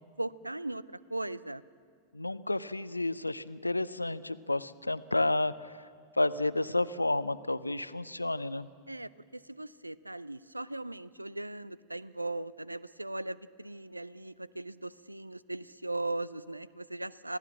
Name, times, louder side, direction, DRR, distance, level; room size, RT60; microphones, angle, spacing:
voice 1, 0.2-1.6 8.9-17.4, right 2 dB, 85° right, 20 dB, 0.4 m, -38 dB
voice 2, 2.1-5.7 6.2-8.7, left 2 dB, 85° left, 17 dB, 0.5 m, -31 dB
25.5 x 16.5 x 7.4 m, 2.1 s
figure-of-eight pair, 90°, 0 cm